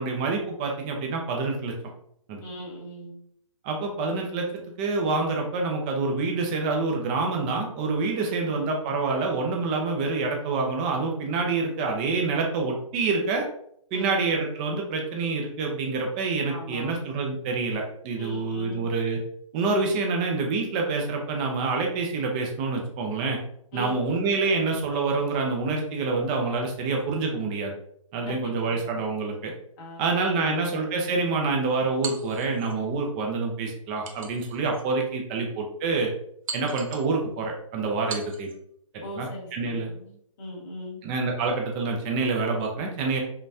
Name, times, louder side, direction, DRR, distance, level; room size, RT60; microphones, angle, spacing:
voice 1, 0.0-1.8 2.3-2.4 3.6-13.5 13.9-19.2 19.5-23.4 23.7-27.7 28.1-29.5 30.0-36.1 36.5-38.5 39.2-39.9 41.0-43.2, right 3 dB, 15° right, 1 dB, 0.4 m, -27 dB
voice 2, 2.4-3.2 8.2-8.7 13.9-14.2 16.5-17.0 18.2-18.9 23.7-24.3 28.2-29.1 29.8-30.6 39.0-41.0, equal, 30° left, -4 dB, 1.3 m, -39 dB
sound 1, 32.0-32.8 34.0-34.9 35.4-35.5 36.5-37.1 38.1-38.6, right 5 dB, 75° right, 0.8 m, -38 dB
5.3 x 2.2 x 2.6 m, 0.69 s
hypercardioid pair, 160°, 18 cm